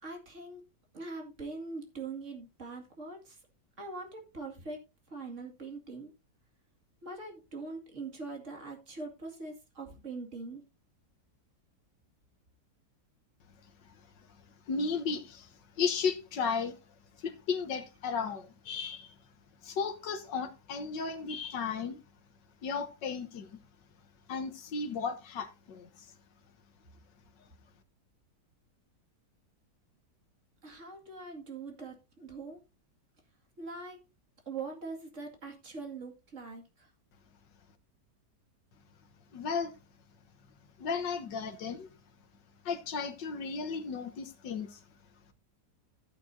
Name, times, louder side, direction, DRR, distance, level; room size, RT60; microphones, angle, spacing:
voice 1, 0.0-0.6 0.9-3.4 3.8-4.8 5.1-6.1 7.0-10.6 30.6-32.6 33.6-34.0 34.5-36.9, right 3 dB, 45° right, 2.5 m, -42 dB
voice 2, 14.7-15.5 15.8-16.8 17.2-19.1 19.6-22.0 22.6-23.6 24.3-26.1 39.3-39.7 40.8-41.9 42.6-44.8, left 5 dB, 85° left, 1.8 m, -34 dB
13.5 x 9.0 x 2.7 m
omnidirectional pair, 1.9 m